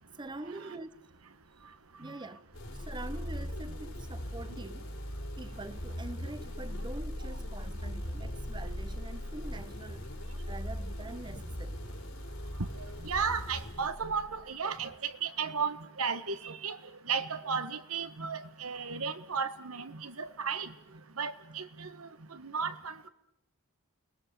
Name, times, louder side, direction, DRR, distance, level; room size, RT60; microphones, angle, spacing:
voice 1, 0.2-1.1 2.0-4.9 5.4-10.1 10.5-11.8 14.8-14.9, right 2 dB, 20° right, 0.9 m, -45 dB
sound 1, 2.5-14.5, equal, 75° left, 5.2 m, -39 dB
voice 2, 12.8-16.8 17.0-20.7 21.2-23.1, right 6 dB, 80° right, 1.5 m, -35 dB
29.5 x 20.5 x 6.9 m
head